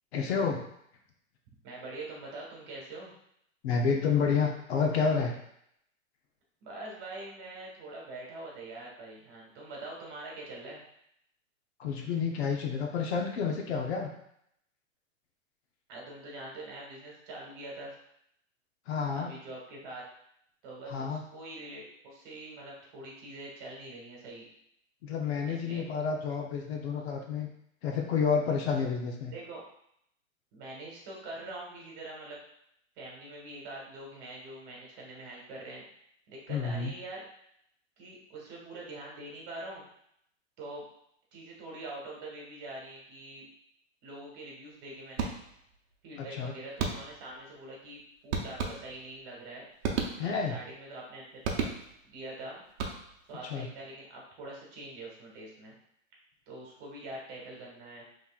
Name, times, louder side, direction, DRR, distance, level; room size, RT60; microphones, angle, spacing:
voice 1, 0.1-0.6 3.6-5.4 11.8-14.1 18.9-19.3 20.9-21.2 25.0-27.5 27.8-29.3 36.5-36.9 46.2-46.5 50.2-50.6 53.5-53.7, left 5 dB, 55° left, 1 dB, 0.8 m, -29 dB
voice 2, 1.6-3.1 6.6-10.8 15.9-17.9 19.1-20.0 20.6-24.5 25.5-25.8 29.3-29.6 30.5-32.4 33.0-35.8 36.3-37.2 38.0-39.8 40.6-40.8 41.3-43.5 44.0-45.3 46.0-49.7 50.2-51.7 52.0-52.6 53.3-55.8 56.5-58.0, right 2 dB, 40° right, -3 dB, 1.5 m, -44 dB
sound 1, 45.2-45.7 46.8-47.3 48.3-49.2 49.8-50.6 51.4-52.1 52.7-53.3, right 5 dB, 55° right, 0.8 m, -34 dB
5.3 x 3.2 x 2.4 m, 0.73 s
hypercardioid pair, 150°, 40 cm